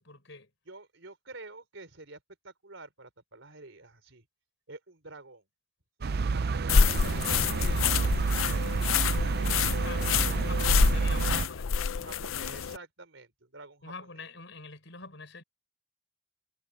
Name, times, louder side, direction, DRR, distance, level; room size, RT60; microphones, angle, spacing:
voice 1, 0.0-0.5 9.8-12.1 13.8-15.4, left 4 dB, 60° left, 6.4 m, -45 dB
voice 2, 0.7-4.3 4.7-5.4 6.0-8.1 8.4-10.6 11.9-13.9, right 3 dB, 65° right, 4.2 m, -48 dB
sound 1, 6.0-11.5, right 4 dB, 50° right, 0.4 m, -29 dB
sound 2, 6.7-12.8, left 6 dB, 80° left, 0.6 m, -27 dB
head